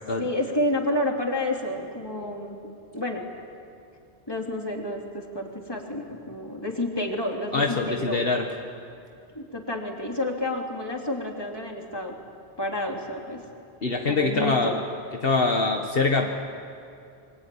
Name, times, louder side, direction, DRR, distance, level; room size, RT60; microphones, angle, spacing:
voice 1, 0.2-2.6 2.9-3.3 4.3-8.2 9.3-12.1 12.6-13.4 14.1-14.7, left 1 dB, 20° left, 0 dB, 3.2 m, -29 dB
voice 2, 7.5-8.5 13.8-14.8 15.2-16.3, left 3 dB, 60° left, 2 dB, 1.7 m, -24 dB
27.5 x 24.0 x 8.7 m, 2.5 s
omnidirectional pair, 1.1 m